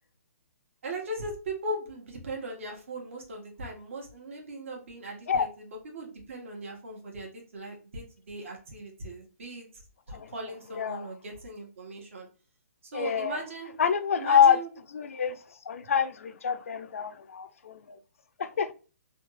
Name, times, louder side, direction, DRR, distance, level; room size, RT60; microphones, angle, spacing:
voice 1, 0.8-9.7 10.1-12.3 12.9-13.7 14.2-14.7, right 1 dB, 55° right, 1.4 m, -39 dB
voice 2, 10.7-11.1 12.9-13.4 13.8-14.6 14.9-15.4 15.7-18.0 18.4-18.7, left 7 dB, 60° left, 0.4 m, -26 dB
3.4 x 2.4 x 3.1 m
hypercardioid pair, 175°, 8 cm